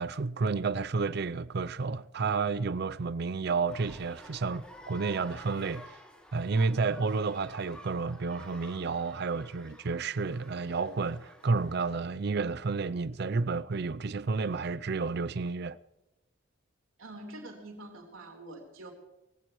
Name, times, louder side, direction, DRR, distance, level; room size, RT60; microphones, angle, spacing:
voice 1, 0.0-5.9 6.3-15.8, right 4 dB, 50° right, 0.5 m, -31 dB
sound 1, 3.7-12.0, equal, 5° left, 2.4 m, -51 dB
voice 2, 17.0-18.9, right 1 dB, 80° right, 3.9 m, -45 dB
21.0 x 16.5 x 3.1 m
head